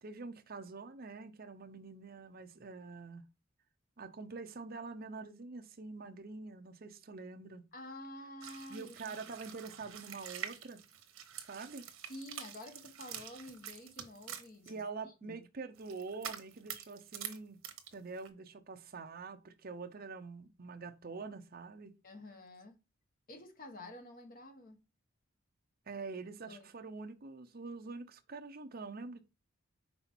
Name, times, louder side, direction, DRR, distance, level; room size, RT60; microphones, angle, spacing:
voice 1, 0.0-3.2 4.0-7.7 8.7-10.8 11.4-11.9 14.7-17.6 17.9-21.9 25.9-29.2, right 4 dB, 45° right, 0.7 m, -45 dB
voice 2, 7.7-9.2 12.1-15.4 22.0-22.8 23.3-24.8 26.5-26.7, left 1 dB, 45° left, 1.1 m, -50 dB
sound 1, 8.4-14.7 15.7-17.4 17.6-18.3, right 9 dB, 80° right, 1.1 m, -46 dB
5.5 x 3.9 x 4.4 m
head